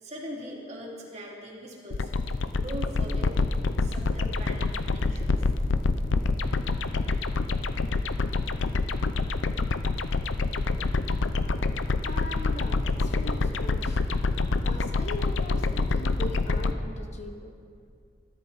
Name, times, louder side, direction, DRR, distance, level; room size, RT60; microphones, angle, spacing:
voice 1, 0.0-2.1 2.6-5.4, equal, 35° right, -3 dB, 2.9 m, -41 dB
sound 1, 1.9-16.7, left 3 dB, 85° left, 0.6 m, -27 dB
voice 2, 12.0-14.0 14.6-17.5, left 1 dB, 40° left, 4 dB, 1.0 m, -40 dB
21.5 x 13.5 x 4.1 m, 2.3 s
head